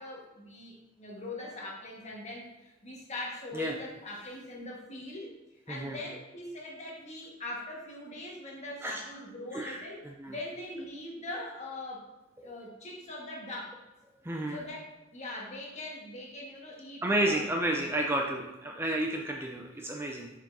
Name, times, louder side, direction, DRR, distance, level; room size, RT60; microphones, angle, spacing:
voice 1, 0.0-10.0 10.3-12.0 12.4-13.8 14.5-14.8 15.1-17.5, left 1 dB, 35° left, -3 dB, 1.5 m, -41 dB
voice 2, 5.7-6.0 8.8-9.0 9.5-10.3 14.2-14.6 17.0-20.3, right 1 dB, 10° right, 1 dB, 0.4 m, -31 dB
7.2 x 5.2 x 2.7 m, 1.0 s
head